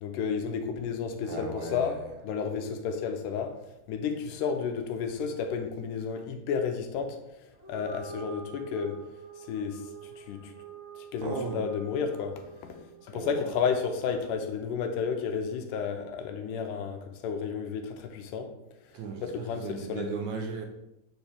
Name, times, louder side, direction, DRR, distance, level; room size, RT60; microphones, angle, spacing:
voice 1, 0.0-3.6 3.9-7.2 7.7-9.0 9.5-9.8 10.2-10.5 11.0-18.5 19.2-20.1, left 6 dB, 85° left, 2.2 m, -32 dB
voice 2, 1.2-2.1 11.2-11.6 13.1-13.6 18.9-20.7, right 4 dB, 80° right, 1.8 m, -36 dB
sound 1, 7.5-14.1, right 3 dB, 35° right, 1.2 m, -47 dB
7.0 x 4.4 x 3.5 m
omnidirectional pair, 3.7 m